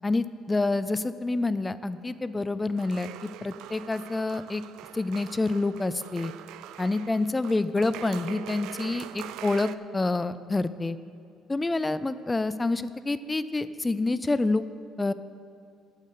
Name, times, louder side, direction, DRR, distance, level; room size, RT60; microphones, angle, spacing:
voice 1, 0.0-4.6 4.9-6.3 6.8-11.0 11.5-14.7 15.0-15.1, left 2 dB, 15° left, 14 dB, 0.3 m, -27 dB
sound 1, 2.8-9.7, right 12 dB, 80° right, 0.3 m, -43 dB
9.3 x 8.1 x 6.6 m, 2.3 s
cardioid pair, 150°, 0 cm